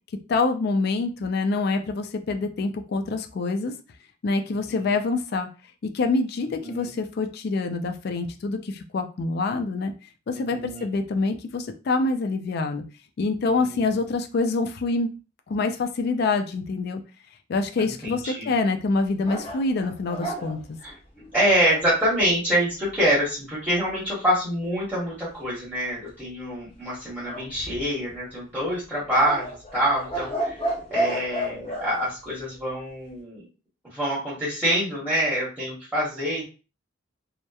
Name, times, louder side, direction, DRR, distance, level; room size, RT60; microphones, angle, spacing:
voice 1, 0.3-3.7 4.2-5.5 5.9-9.9 10.3-12.8 13.2-15.1 15.5-17.0 17.5-20.8, left 3 dB, 55° left, 6 dB, 0.3 m, -26 dB
voice 2, 10.3-10.8 13.4-13.9 18.0-18.5 20.8-20.9 21.3-29.5 29.7-30.6 30.9-33.4 33.9-36.5, equal, 10° right, -9 dB, 1.0 m, -26 dB
sound 1, 19.2-21.9 27.2-28.1 29.1-31.9, right 1 dB, 30° left, 0.7 m, -31 dB
2.7 x 2.1 x 2.3 m, 0.34 s
head